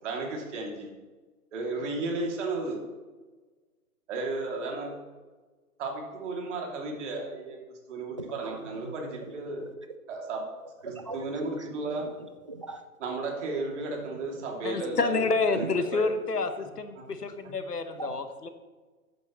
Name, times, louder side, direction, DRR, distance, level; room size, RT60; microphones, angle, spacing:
voice 1, 0.0-0.9 1.5-2.8 4.1-4.9 5.8-7.6 7.9-9.6 10.1-10.5 10.8-12.1 13.0-16.0 17.0-17.1 17.4-17.5, right 3 dB, 50° right, 0 dB, 2.9 m, -34 dB
voice 2, 8.2-8.9 9.2-9.3 9.6-9.7 10.8-12.8 13.6-14.5 15.2-15.8 17.1-17.4 17.9-18.1, right 3 dB, 25° right, 8 dB, 0.3 m, -42 dB
voice 3, 14.6-18.5, left 3 dB, 90° left, 9 dB, 1.3 m, -29 dB
13.5 x 8.9 x 3.2 m, 1.3 s
figure-of-eight pair, 130°, 45 cm